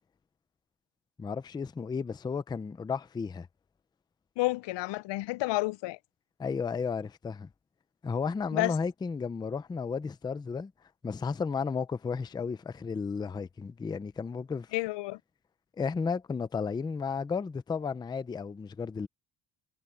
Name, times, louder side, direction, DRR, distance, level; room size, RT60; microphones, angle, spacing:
voice 1, 1.2-3.5 6.4-7.5 8.0-10.7 11.0-14.7 15.8-19.1, left 5 dB, 10° left, 0.3 m, -33 dB
voice 2, 4.4-6.0 8.5-8.7 14.7-15.2, left 21 dB, 85° left, 0.6 m, -30 dB
cardioid pair, 180°, 42 cm